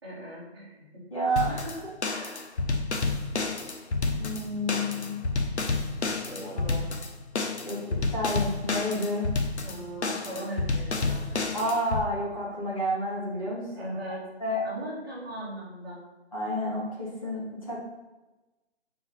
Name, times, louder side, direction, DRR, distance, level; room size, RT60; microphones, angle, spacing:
voice 1, 0.0-1.0 6.2-6.9 9.6-11.3 13.8-14.2 14.6-16.0, right 1 dB, 20° right, -9 dB, 2.0 m, -39 dB
voice 2, 1.1-2.4 4.2-5.1 6.4-6.5 7.6-9.3 11.5-14.0 14.4-14.6 16.3-17.8, equal, 30° left, -7 dB, 2.3 m, -30 dB
sound 1, 1.4-12.0, left 3 dB, 75° left, 0.9 m, -30 dB
sound 2, 4.0-11.6, left 3 dB, 5° left, 1.3 m, -50 dB
6.0 x 4.9 x 4.2 m, 1.1 s
hypercardioid pair, 175°, 34 cm